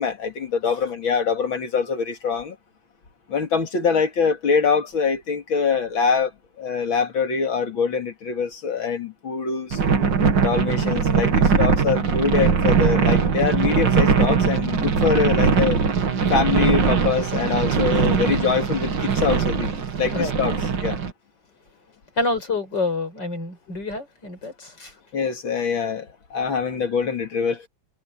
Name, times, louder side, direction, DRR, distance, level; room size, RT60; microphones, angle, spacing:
voice 1, 0.0-2.6 3.3-6.3 6.6-9.8 10.4-15.8 16.3-20.5 20.8-21.0 25.1-27.7, left 5 dB, 80° left, 3.1 m, -24 dB
sound 1, 9.7-21.1, right 5 dB, 65° right, 2.5 m, -21 dB
voice 2, 22.2-24.9, left 3 dB, 60° left, 6.2 m, -27 dB
omnidirectional pair, 2.1 m